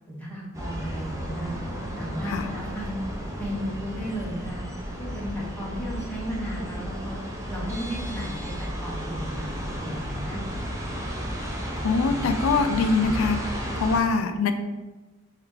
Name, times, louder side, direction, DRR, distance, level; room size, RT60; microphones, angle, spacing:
voice 1, 0.1-1.5 2.0-3.0 3.4-4.6 5.0-7.2 7.5-10.4, equal, 5° left, -6 dB, 0.8 m, -34 dB
sound 1, 0.5-14.0, equal, 15° right, 0.5 m, -33 dB
voice 2, 11.8-13.5 13.8-14.5, left 4 dB, 75° left, 8 dB, 0.3 m, -23 dB
3.6 x 3.2 x 3.2 m, 1.2 s
head